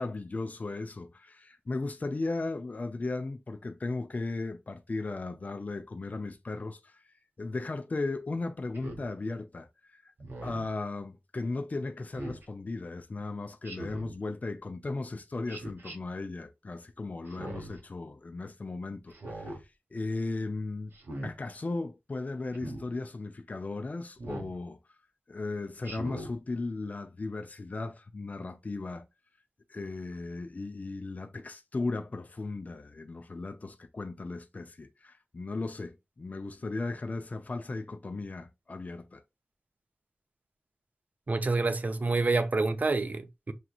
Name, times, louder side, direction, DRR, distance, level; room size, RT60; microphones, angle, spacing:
voice 1, 0.0-7.0 7.4-10.1 10.4-20.9 21.2-24.8 25.3-29.1 29.7-39.2, left 3 dB, 45° left, 0.5 m, -36 dB
Speech synthesizer, 8.7-9.1 10.2-10.7 12.1-12.4 13.6-14.1 15.5-16.0 17.3-17.8 19.1-19.6 20.9-21.3 22.5-22.8 24.2-24.5 25.8-26.3, right 1 dB, 85° right, 1.1 m, -40 dB
voice 2, 41.3-43.5, right 3 dB, 45° right, 0.6 m, -28 dB
6.3 x 2.9 x 2.3 m
wide cardioid pair, 75°, 4 cm